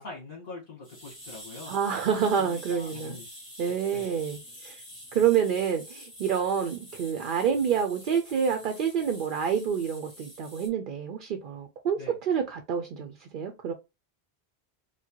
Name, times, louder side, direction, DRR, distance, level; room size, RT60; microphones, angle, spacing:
voice 1, 0.0-1.7 2.4-3.2 3.9-4.1 12.0-12.1, left 3 dB, 65° left, 1.7 m, -43 dB
sound 1, 0.8-10.7, equal, 20° left, 2.1 m, -47 dB
voice 2, 1.7-3.2 3.6-4.4 4.6-4.7 5.1-13.7, right 7 dB, 60° right, 0.6 m, -28 dB
4.5 x 2.1 x 2.9 m
omnidirectional pair, 1.1 m